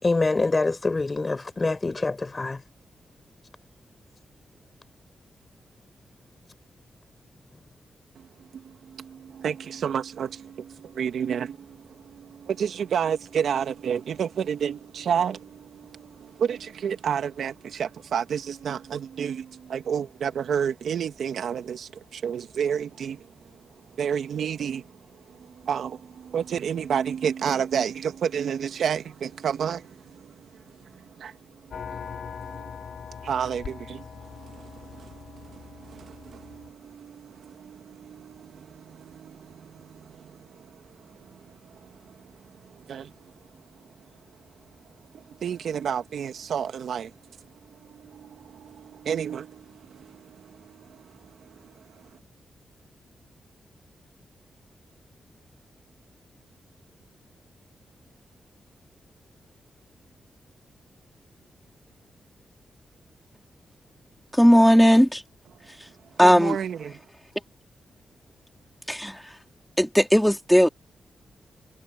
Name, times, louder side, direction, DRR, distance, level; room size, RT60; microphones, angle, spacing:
voice 1, 0.0-2.6, left 3 dB, 35° left, 5.2 m, -25 dB
voice 2, 8.2-23.5 23.9-43.3 45.1-47.1 47.4-52.2 66.2-67.0, right 8 dB, 80° right, 1.9 m, -31 dB
sound 1, 31.7-36.7, left 7 dB, 70° left, 4.5 m, -41 dB
voice 3, 64.4-65.2 66.2-66.6 68.9-69.2 69.8-70.7, equal, ahead, 3.7 m, -17 dB
cardioid pair, 55°, 0 cm